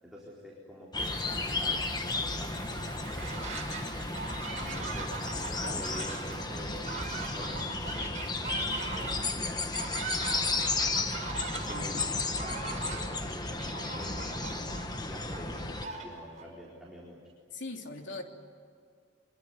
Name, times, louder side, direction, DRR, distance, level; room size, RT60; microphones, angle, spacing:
voice 1, 0.0-4.0 4.6-17.2, equal, ahead, -5 dB, 4.2 m, -47 dB
sound 1, 0.9-15.9, left 3 dB, 20° left, 1.3 m, -34 dB
Toilet flush / Drip / Trickle dribble, 1.0-11.1, right 3 dB, 60° right, 5.6 m, -50 dB
sound 2, 2.9-3.8 4.1-16.5, right 4 dB, 40° right, 5.7 m, -40 dB
voice 2, 4.6-4.9 11.5-12.2 17.5-18.2, left 2 dB, 75° left, 3 dB, 3.2 m, -41 dB
25.0 x 22.5 x 9.7 m, 2.2 s
head